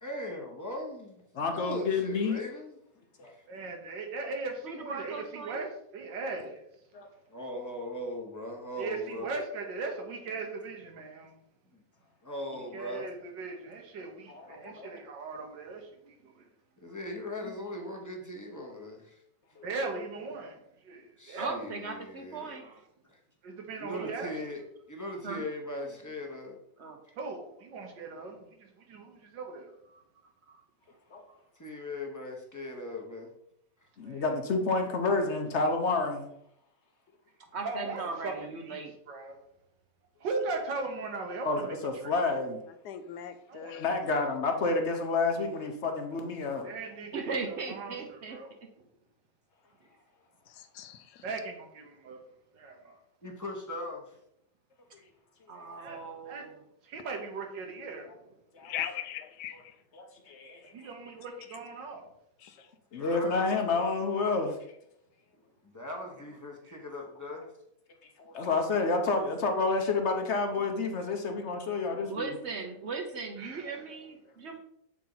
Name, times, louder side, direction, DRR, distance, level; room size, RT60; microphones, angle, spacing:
voice 1, 0.0-1.2 1.5-2.8 3.2-3.4 7.3-9.3 11.7-11.8 12.2-13.1 16.8-19.2 21.2-22.6 23.1-23.2 23.8-24.6 24.9-26.6 27.1-27.2 31.6-33.3 33.8-33.9 53.2-54.2 63.0-63.4 65.6-67.5, left 1 dB, 15° left, 0 dB, 0.8 m, -39 dB
voice 2, 1.3-2.4 3.2-3.3 6.9-7.1 14.3-14.9 19.6-19.7 31.1-31.2 34.0-36.3 41.4-42.6 43.8-46.7 55.5-55.8 58.5-58.7 59.9-60.9 62.9-64.6 68.2-72.3, left 3 dB, 55° left, 4 dB, 0.8 m, -29 dB
voice 3, 3.5-6.6 8.8-11.4 12.7-16.4 19.6-20.6 20.8-21.6 23.4-24.3 27.2-29.7 34.0-34.3 37.6-38.3 38.7-39.4 40.2-41.8 42.0-42.2 43.5-43.8 46.6-48.5 51.2-52.2 52.5-53.0 55.8-56.0 56.3-56.5 56.8-58.1 60.7-62.1 66.7-66.8 73.4-73.8, right 3 dB, 90° right, 3 dB, 1.9 m, -38 dB
voice 4, 4.6-5.7 21.4-22.8 25.2-25.4 26.8-27.0 30.5-30.6 31.3-31.4 37.5-38.9 47.1-48.4 55.5-56.6 72.1-74.6, right 4 dB, 55° right, 4 dB, 0.8 m, -38 dB
voice 5, 42.8-43.9 50.5-51.2 58.6-59.7 62.4-62.5, left 10 dB, 75° left, 10 dB, 1.2 m, -39 dB
7.4 x 4.3 x 3.9 m, 0.75 s
omnidirectional pair, 1.9 m